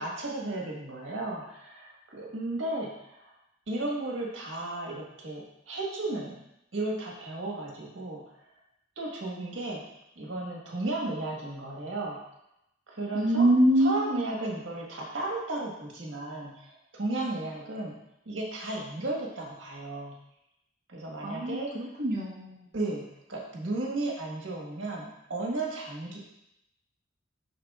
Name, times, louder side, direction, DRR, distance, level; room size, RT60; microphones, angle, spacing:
voice 1, 0.0-3.3 3.7-6.4 6.7-8.2 9.0-9.8 10.1-12.2 12.9-13.5 13.8-18.0 18.2-20.2 20.9-21.7 22.7-26.2, right 2 dB, 85° right, -2 dB, 1.5 m, -34 dB
voice 2, 13.1-14.3 21.2-22.7, right 1 dB, 50° right, -6 dB, 1.1 m, -25 dB
11.0 x 3.8 x 2.4 m, 0.82 s
head